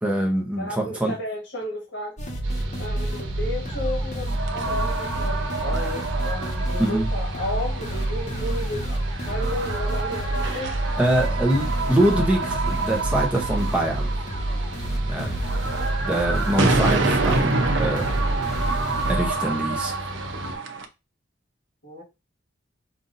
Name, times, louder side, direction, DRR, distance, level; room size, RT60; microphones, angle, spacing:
voice 1, 0.0-1.1 6.8-7.1 11.0-14.1 15.1-15.3 16.0-18.1 18.5-18.7 19.1-19.9, right 1 dB, 5° right, 0.8 m, -24 dB
voice 2, 0.6-2.1 2.8-9.0 9.2-10.7 15.7-15.9 21.8-22.0, left 1 dB, 65° left, 1.6 m, -33 dB
sound 1, 2.2-19.3, right 1 dB, 40° left, 1.0 m, -28 dB
Mechanical fan, 2.4-20.5, equal, 85° right, 1.1 m, -37 dB
sound 2, 4.3-20.9, right 3 dB, 70° right, 0.7 m, -28 dB
5.6 x 2.6 x 2.6 m
head